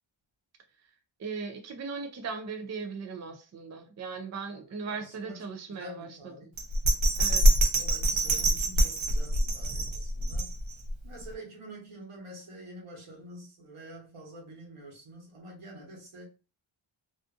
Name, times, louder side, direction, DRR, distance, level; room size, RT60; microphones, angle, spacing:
voice 1, 1.2-6.5 7.2-7.5, right 4 dB, 35° right, 0.4 m, -38 dB
voice 2, 4.9-6.5 7.6-10.5 11.0-16.3, right 1 dB, 85° right, 1.2 m, -47 dB
Bell, 6.6-10.9 11.3-11.4, right 1 dB, 65° right, 0.7 m, -25 dB
2.5 x 2.4 x 2.4 m
wide cardioid pair, 90°, 50 cm